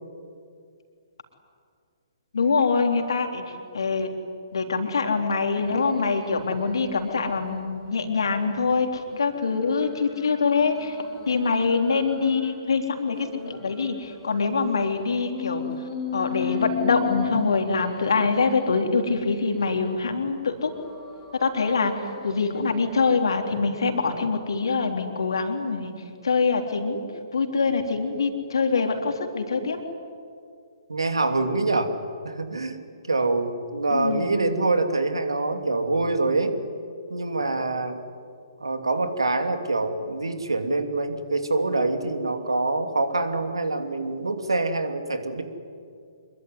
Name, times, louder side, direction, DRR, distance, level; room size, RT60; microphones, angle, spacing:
voice 1, 2.3-3.4 3.7-4.1 4.5-11.0 11.3-15.6 16.1-20.7 21.4-21.9 22.2-25.9 26.2-27.0 27.3-29.8 33.9-34.3, left 4 dB, 60° left, 4 dB, 3.7 m, -24 dB
sound 1, 5.6-7.6 8.1-12.6 13.1-20.0 20.6-23.5 24.0-24.3, left 8 dB, 15° left, 3.3 m, -38 dB
voice 2, 30.9-31.9 32.2-32.8 33.1-36.6 37.1-38.0 38.6-45.4, right 2 dB, 70° right, 7 dB, 2.9 m, -25 dB
26.0 x 22.5 x 9.8 m, 2.3 s
figure-of-eight pair, 125°, 3 cm